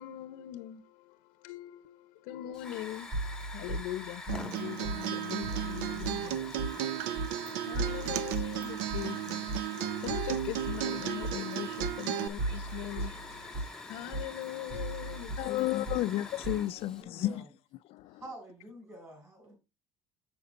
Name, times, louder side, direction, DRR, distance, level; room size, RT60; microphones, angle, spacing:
voice 1, 0.0-3.1 3.5-16.0, left 14 dB, 85° left, 0.7 m, -42 dB
Hiss / Fire, 2.5-17.0, left 3 dB, 5° left, 0.8 m, -46 dB
sound 1, 3.1-4.6 4.8-5.0 5.4-6.7 7.2-7.5 7.7-9.6 10.1-11.5 11.8-11.9 12.4-13.7 14.1-16.0 16.4-16.5, right 2 dB, 50° right, 5.4 m, -37 dB
Acoustic guitar, 4.3-12.3, right 11 dB, 85° right, 0.6 m, -35 dB
voice 2, 15.4-17.3, left 15 dB, 45° left, 0.4 m, -31 dB
voice 3, 16.8-17.5 18.2-19.6, right 1 dB, 20° right, 4.4 m, -48 dB
7.7 x 6.8 x 3.7 m
cardioid pair, 165°, 14 cm